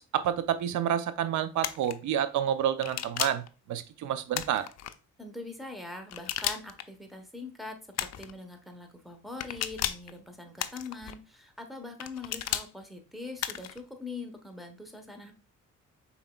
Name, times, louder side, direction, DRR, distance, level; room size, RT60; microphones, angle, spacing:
voice 1, 0.0-3.4 3.7-4.7, right 10 dB, 75° right, 12 dB, 0.5 m, -29 dB
sound 1, 1.6-1.9 2.8-3.5 4.3-4.9 6.1-6.8 7.9-8.3 9.4-10.1 10.6-11.1 12.0-12.7 13.4-13.8, left 11 dB, 60° left, 0.5 m, -34 dB
voice 2, 5.2-15.3, left 3 dB, ahead, 5 dB, 1.1 m, -43 dB
5.6 x 4.1 x 2.3 m, 0.32 s
cardioid pair, 90°, 30 cm